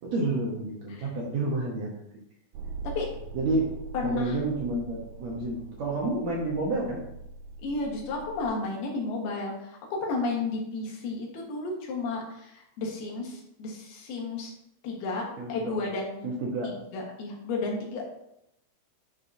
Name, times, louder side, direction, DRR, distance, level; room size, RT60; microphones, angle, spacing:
voice 1, 0.0-2.0 3.3-3.7 4.0-7.0 15.4-15.7 16.2-16.7, right 2 dB, 70° right, -2 dB, 1.7 m, -29 dB
sound 1, 2.5-8.5, right 3 dB, 85° right, 2.3 m, -41 dB
voice 2, 3.9-4.4 7.6-14.5 14.8-15.2 15.5-16.2 16.6-18.0, left 3 dB, 90° left, 0 dB, 3.3 m, -32 dB
9.8 x 5.4 x 2.7 m, 0.81 s
omnidirectional pair, 4.3 m